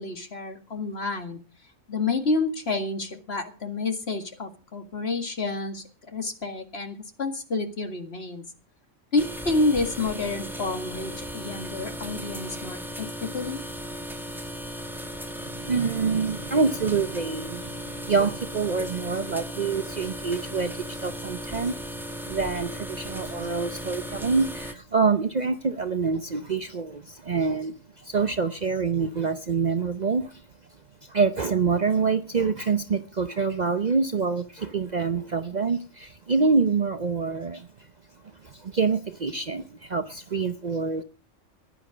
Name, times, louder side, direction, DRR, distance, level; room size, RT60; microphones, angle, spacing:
voice 1, 0.0-1.4 1.9-5.8 6.1-8.4 9.1-13.1 13.3-13.6, left 3 dB, 55° left, 6 dB, 2.3 m, -29 dB
sound 1, 9.2-24.7, equal, ahead, 1.9 m, -36 dB
voice 2, 15.4-21.8 22.3-30.4 31.0-37.9 38.4-41.0, right 4 dB, 40° right, 10 dB, 0.7 m, -26 dB
15.0 x 11.0 x 5.0 m, 0.35 s
omnidirectional pair, 1.3 m